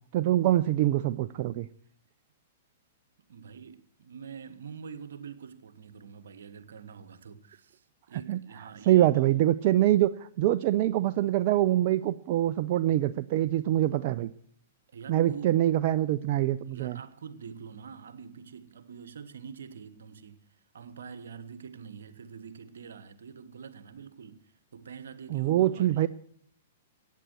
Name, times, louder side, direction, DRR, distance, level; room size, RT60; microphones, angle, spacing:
voice 1, 0.1-1.7 8.3-8.4 8.9-14.3 15.1-17.0 25.3-26.1, right 13 dB, 50° right, 0.5 m, -24 dB
voice 2, 3.3-9.4 14.9-15.6 16.6-20.5 20.7-26.1, right 6 dB, 75° right, 1.3 m, -45 dB
15.0 x 9.3 x 6.2 m
hypercardioid pair, 120°, 0 cm